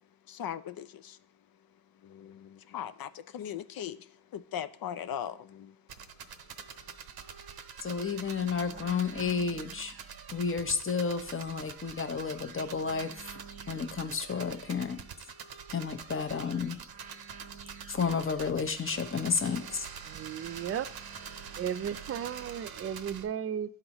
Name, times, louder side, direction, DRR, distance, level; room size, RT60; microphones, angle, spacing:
voice 1, 0.0-6.5 6.8-6.9, left 9 dB, 55° left, 0.5 m, -41 dB
sound 1, 5.9-23.2, right 7 dB, 55° right, 0.8 m, -45 dB
voice 2, 7.8-9.9 10.3-13.4 13.7-15.0 15.7-16.8 17.9-19.9, left 5 dB, 30° left, 0.9 m, -31 dB
voice 3, 20.0-20.9 21.6-23.8, right 9 dB, 35° right, 0.4 m, -35 dB
11.5 x 3.9 x 3.0 m
cardioid pair, 65°, 45 cm